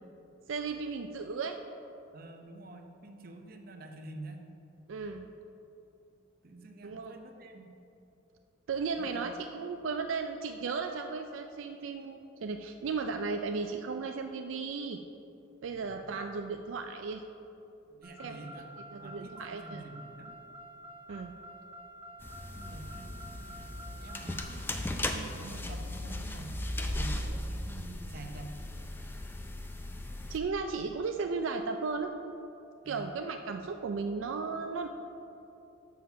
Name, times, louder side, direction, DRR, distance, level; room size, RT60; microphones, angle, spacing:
voice 1, 0.5-1.6 4.9-5.3 6.8-7.1 8.7-15.0 15.6-17.2 18.2-18.4 18.9-19.8 21.1-21.3 30.3-32.1 32.9-34.9, right 4 dB, 75° right, 5 dB, 0.4 m, -35 dB
voice 2, 2.1-4.4 6.4-7.7 9.0-9.4 15.7-16.1 17.9-20.3 22.6-28.6 32.8-33.1, right 2 dB, 45° right, 4 dB, 0.7 m, -47 dB
Car, 18.0-24.4, equal, 10° right, 1.0 m, -49 dB
sound 1, 22.2-30.4, left 1 dB, 10° left, 0.4 m, -37 dB
7.3 x 5.9 x 5.8 m, 2.9 s
head